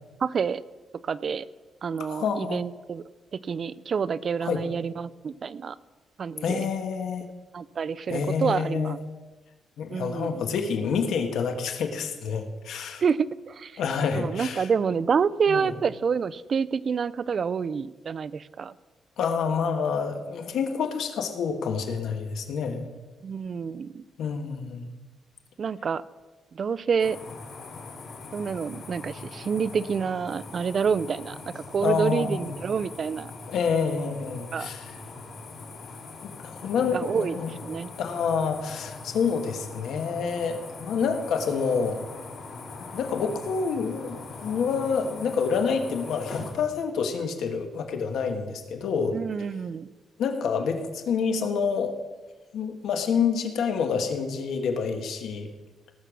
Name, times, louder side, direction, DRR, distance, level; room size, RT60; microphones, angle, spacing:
voice 1, 0.2-0.6 1.0-1.5 1.8-3.0 3.5-5.8 6.2-6.7 7.5-9.0 9.9-10.4 13.0-13.8 14.1-18.7 23.2-24.0 25.6-26.0 26.5-27.2 28.3-33.3 34.5-34.7 36.9-37.9 49.1-49.9, right 6 dB, 45° right, 18 dB, 0.4 m, -28 dB
voice 2, 2.1-2.6 4.4-4.6 6.4-7.3 8.1-8.9 9.8-13.0 13.8-14.7 15.5-15.7 19.2-22.9 24.2-24.9 31.8-32.6 33.5-34.9 36.2-36.3 36.6-37.5 38.0-42.0 42.8-49.2 50.2-51.9 52.5-55.5, left 6 dB, 80° left, 6 dB, 1.5 m, -28 dB
sound 1, 27.0-46.5, left 3 dB, 60° left, 2.9 m, -42 dB
18.5 x 6.8 x 6.2 m, 1.3 s
cardioid pair, 130°, 0 cm